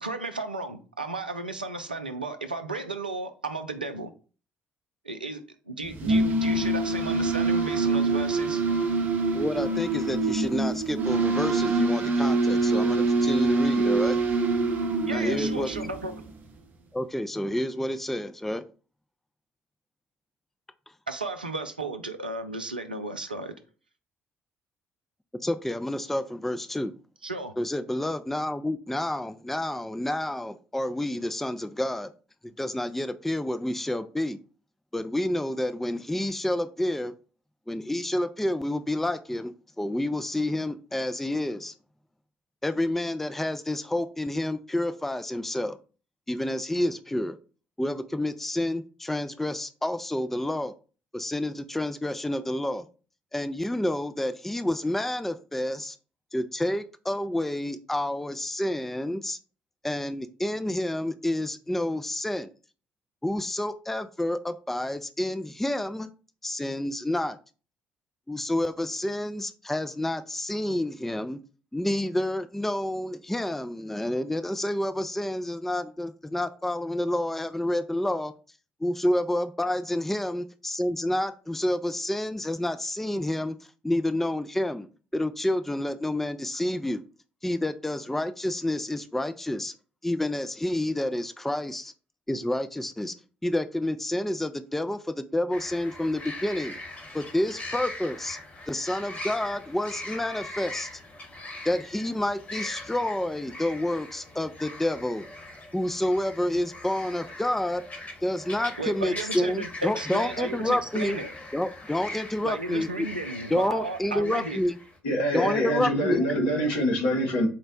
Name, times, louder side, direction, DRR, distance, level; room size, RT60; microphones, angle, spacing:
voice 1, 0.0-4.1 5.0-5.4 5.7-8.6 15.1-16.1 21.1-23.5 27.2-27.5 108.8-111.3 112.4-114.6, right 3 dB, 90° right, 0.3 m, -34 dB
sound 1, 5.9-16.3, right 3 dB, 45° right, 0.6 m, -25 dB
voice 2, 9.3-14.2 15.1-15.7 16.9-18.6 25.4-26.9 27.6-32.1 32.6-34.4 34.9-37.1 37.7-41.7 42.6-45.8 46.3-47.4 47.8-50.7 51.1-52.8 53.3-56.0 56.3-59.4 59.8-62.5 63.2-66.1 66.4-67.4 68.3-71.4 71.7-78.3 78.8-83.6 83.8-84.9 85.1-87.0 87.4-89.7 90.0-91.9 92.3-93.1 93.4-96.8 97.1-98.4 98.7-100.9 101.7-105.2 105.7-107.8 108.2-111.2 111.5-113.1 113.5-114.7 115.3-116.2, left 1 dB, 5° left, 0.3 m, -29 dB
sound 2, 95.5-115.0, left 1 dB, 35° left, 1.1 m, -41 dB
voice 3, 115.0-117.5, equal, 70° left, 0.9 m, -25 dB
4.3 x 2.1 x 3.9 m
figure-of-eight pair, 45°, 5 cm